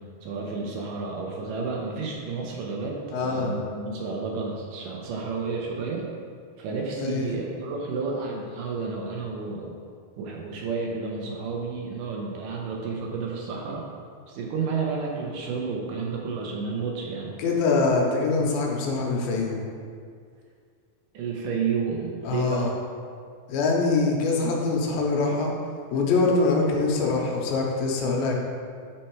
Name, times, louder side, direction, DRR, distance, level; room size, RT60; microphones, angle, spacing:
voice 1, 0.2-6.1 6.6-9.8 10.2-13.9 14.3-17.3 21.1-22.7, right 4 dB, 75° right, -1 dB, 2.2 m, -31 dB
voice 2, 3.1-3.5 7.0-7.3 17.4-19.6 22.2-22.7 23.5-25.5 25.9-28.4, left 3 dB, 85° left, -1 dB, 2.7 m, -24 dB
7.4 x 4.5 x 4.6 m, 2.2 s
omnidirectional pair, 4.2 m